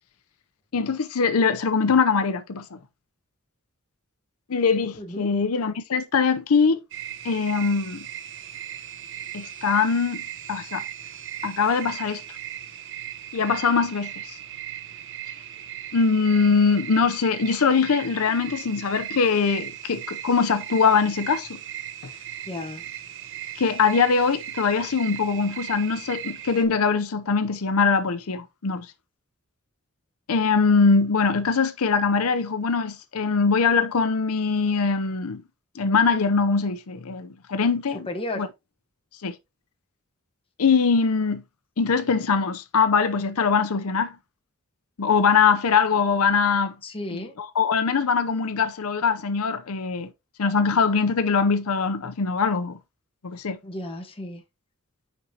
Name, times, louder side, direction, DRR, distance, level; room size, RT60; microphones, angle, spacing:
voice 1, 0.7-2.8 4.5-6.8 7.2-8.1 9.3-10.2 10.5-10.8 11.4-12.2 13.3-14.4 15.9-21.5 23.6-28.9 30.3-35.4 35.7-38.1 38.4-38.5 39.2-39.3 40.6-41.4 41.8-44.1 45.0-46.7 47.4-50.1 50.4-52.8 53.2-53.6, left 5 dB, 85° left, 0.7 m, -22 dB
voice 2, 5.0-5.3 22.5-22.8 38.1-38.5 46.8-47.4 53.6-54.4, left 1 dB, 25° left, 1.3 m, -33 dB
sound 1, 6.9-26.7, right 11 dB, 60° right, 0.9 m, -38 dB
8.0 x 5.3 x 2.8 m
head